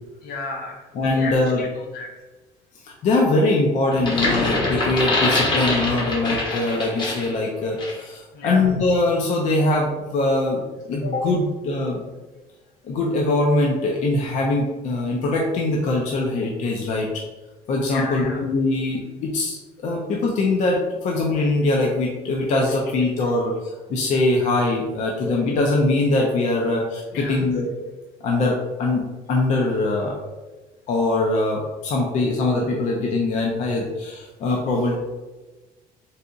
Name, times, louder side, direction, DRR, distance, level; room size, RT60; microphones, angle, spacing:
voice 1, 0.2-2.1 8.3-8.6 17.9-18.4 23.2-23.3 27.1-27.5, left 3 dB, 70° left, 0 dB, 1.0 m, -33 dB
voice 2, 0.9-1.6 2.8-10.6 10.9-12.0 12.8-17.1 17.7-27.7 28.2-29.0 29.3-30.2 30.9-35.0, left 2 dB, 50° left, -1 dB, 0.6 m, -22 dB
sound 1, 3.9-7.4 7.8-8.0, left 2 dB, 30° left, 0.9 m, -24 dB
4.1 x 2.4 x 3.8 m, 1.2 s
cardioid pair, 170°, 16 cm